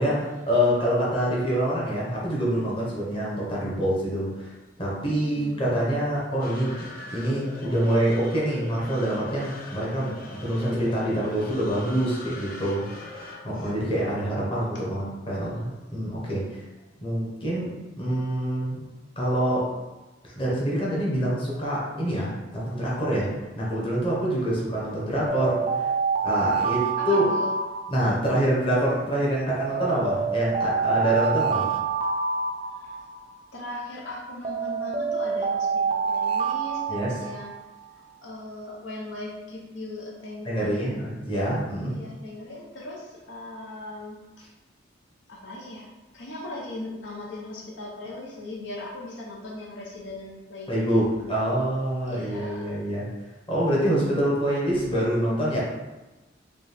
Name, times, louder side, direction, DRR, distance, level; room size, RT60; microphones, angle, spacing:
voice 1, 0.0-4.5 4.8-10.1 10.4-16.5 17.0-18.8 19.2-19.7 20.2-25.9 26.2-27.3 27.9-31.7 36.9-37.1 40.4-42.0 50.7-53.1 53.5-55.6, right 1 dB, 30° left, -6 dB, 1.2 m, -26 dB
voice 2, 5.2-5.7 24.4-24.7 27.0-27.5 32.7-33.0 33.5-37.5 37.9-41.0 41.9-44.2 45.3-50.7 52.1-52.7, left 1 dB, 85° left, -3 dB, 0.8 m, -38 dB
sound 1, 6.4-14.8, left 2 dB, 55° left, 0.6 m, -42 dB
sound 2, 25.3-28.4 29.6-33.3 34.4-37.7, right 5 dB, 30° right, 0.3 m, -27 dB
5.1 x 2.3 x 3.4 m, 1.1 s
head